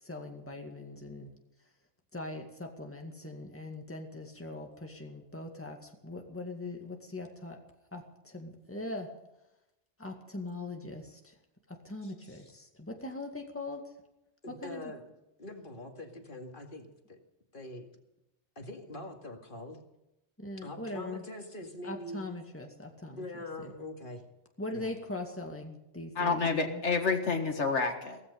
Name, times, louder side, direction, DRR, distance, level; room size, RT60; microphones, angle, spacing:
voice 1, 0.0-1.3 2.1-7.6 7.9-9.1 10.0-11.3 11.7-13.9 14.5-14.8 20.4-21.2 21.8-23.2 23.6-23.7 24.6-26.8, left 2 dB, 10° left, 2 dB, 2.1 m, -41 dB
voice 2, 12.0-12.5 14.4-15.1 15.4-17.2 17.5-17.8 18.6-19.8 20.6-22.2 23.2-24.2 24.7-24.9, left 1 dB, 50° left, 3 dB, 2.4 m, -44 dB
voice 3, 26.2-28.2, left 4 dB, 80° left, 4 dB, 2.1 m, -29 dB
17.0 x 15.0 x 5.4 m, 0.89 s
omnidirectional pair, 1.2 m